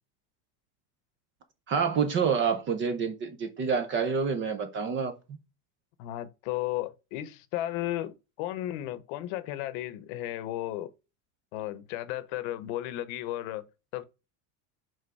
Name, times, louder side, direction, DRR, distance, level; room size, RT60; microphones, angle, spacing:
voice 1, 1.7-5.1, right 6 dB, 25° right, 0.5 m, -27 dB
voice 2, 6.0-10.9 11.5-13.7 13.9-14.0, left 14 dB, 55° left, 0.9 m, -34 dB
5.3 x 3.8 x 4.7 m
supercardioid pair, 155°, 49 cm